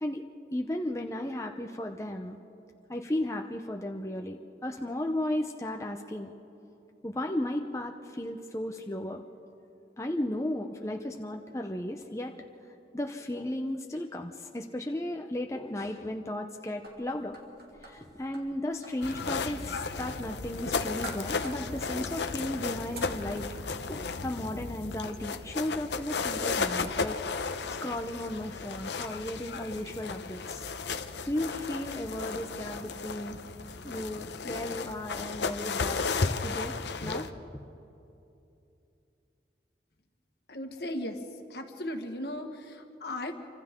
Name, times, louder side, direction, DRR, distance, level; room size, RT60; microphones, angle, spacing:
voice 1, 0.0-2.4 2.9-6.3 7.0-9.2 10.0-12.4 12.9-17.4 17.8-23.6 23.9-27.2 27.8-30.7 31.3-33.4 33.8-36.0 36.4-36.7 37.0-37.6, left 1 dB, 15° left, 3 dB, 0.7 m, -35 dB
sound 1, 16.8-24.2, right 2 dB, 60° right, 2.8 m, -50 dB
sound 2, 19.0-37.3, left 4 dB, 80° left, 0.8 m, -34 dB
voice 2, 40.5-41.2 41.5-43.3, left 1 dB, 65° left, 5 dB, 1.6 m, -36 dB
28.5 x 25.0 x 3.7 m, 2.8 s
head